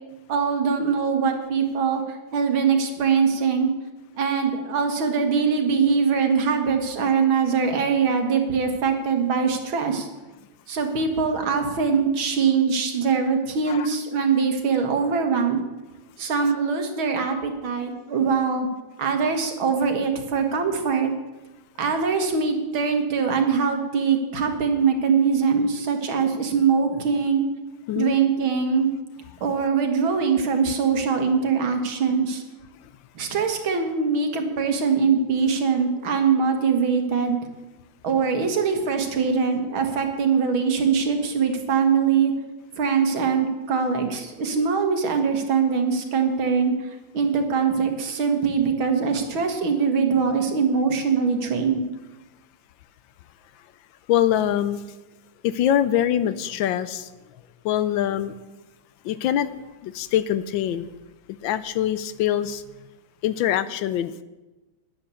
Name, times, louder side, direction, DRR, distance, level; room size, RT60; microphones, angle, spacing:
voice 1, 0.3-3.7 4.2-10.1 10.7-15.6 16.2-18.7 19.0-21.1 21.8-27.4 28.0-28.9 29.4-32.4 33.2-37.4 38.0-42.3 42.8-51.8, right 5 dB, 80° right, 4 dB, 2.3 m, -22 dB
voice 2, 27.9-28.2 54.1-54.8 55.4-57.1 57.6-58.3 59.0-59.5 59.8-60.9 61.4-62.6 63.2-64.1, left 11 dB, 75° left, 14 dB, 1.3 m, -23 dB
11.0 x 9.8 x 7.0 m, 1.1 s
omnidirectional pair, 2.2 m